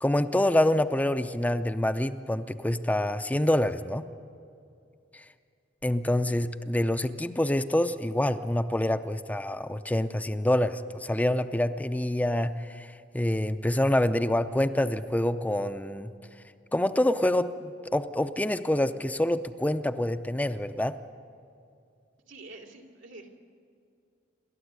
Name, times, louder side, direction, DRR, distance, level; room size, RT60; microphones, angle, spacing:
voice 1, 0.0-4.0 5.1-5.2 5.8-16.1 16.7-21.0, left 1 dB, 10° left, 11 dB, 0.5 m, -26 dB
voice 2, 22.3-23.4, right 2 dB, 85° right, 2 dB, 2.7 m, -47 dB
28.0 x 13.0 x 8.2 m, 2.5 s
head